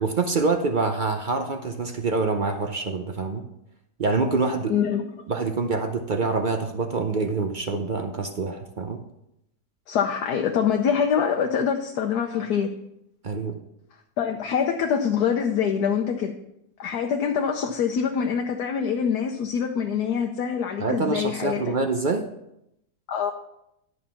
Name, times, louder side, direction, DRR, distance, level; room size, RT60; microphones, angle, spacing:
voice 1, 0.0-3.4 4.0-4.7 5.3-9.0 13.2-13.6 20.8-22.2, right 3 dB, 50° right, 5 dB, 0.6 m, -26 dB
voice 2, 4.7-5.0 9.9-12.7 14.2-16.3 16.8-21.7 23.1-23.3, left 7 dB, 80° left, 3 dB, 1.3 m, -25 dB
11.0 x 5.6 x 5.6 m, 0.81 s
omnidirectional pair, 1.7 m